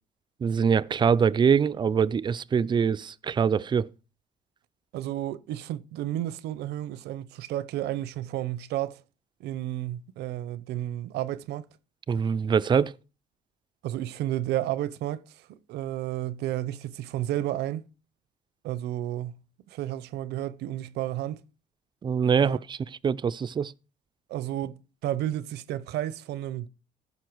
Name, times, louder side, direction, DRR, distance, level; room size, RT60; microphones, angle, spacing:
voice 1, 0.4-3.9 12.1-12.9 22.0-22.8 23.0-23.7, right 6 dB, 25° right, 0.4 m, -23 dB
voice 2, 4.9-9.0 9.4-11.7 13.8-17.8 18.6-19.4 19.7-21.4 22.4-22.6 24.3-26.7, right 13 dB, 80° right, 0.7 m, -32 dB
14.5 x 5.7 x 4.6 m
cardioid pair, 110°, 17 cm